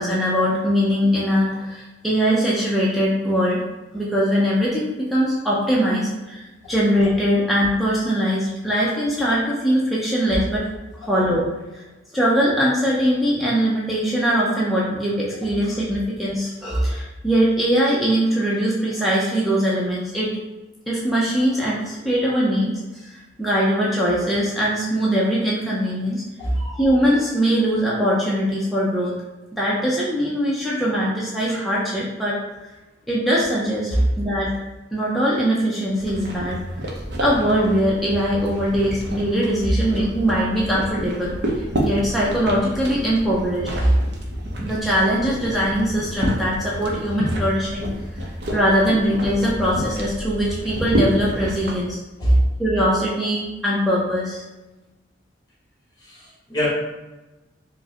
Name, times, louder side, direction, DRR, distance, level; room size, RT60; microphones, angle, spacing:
voice 1, 0.0-3.6 3.9-10.7 11.0-11.5 11.7-11.8 12.1-20.3 20.9-26.2 26.5-29.2 29.5-32.7 33.1-34.5 34.9-36.6 37.2-41.3 41.8-43.7 44.6-47.9 48.5-52.0 52.6-54.4, equal, ahead, -7 dB, 0.5 m, -21 dB
sound 1, 36.0-51.7, equal, 65° right, 0.6 m, -29 dB
voice 2, 56.0-56.7, right 1 dB, 20° left, -6 dB, 1.3 m, -20 dB
4.6 x 2.1 x 2.8 m, 1.1 s
head